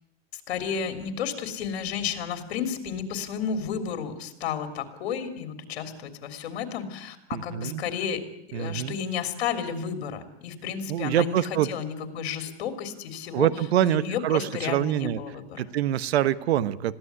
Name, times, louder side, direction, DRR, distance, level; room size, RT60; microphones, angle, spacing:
voice 1, 0.3-8.2 8.5-13.5 13.8-15.6, left 7 dB, 80° left, 7 dB, 3.3 m, -32 dB
voice 2, 7.3-7.8 8.5-9.0 10.9-11.7 13.3-15.2 15.6-17.0, right 12 dB, 90° right, 16 dB, 1.2 m, -25 dB
21.5 x 15.5 x 9.7 m, 0.81 s
supercardioid pair, 150°, 31 cm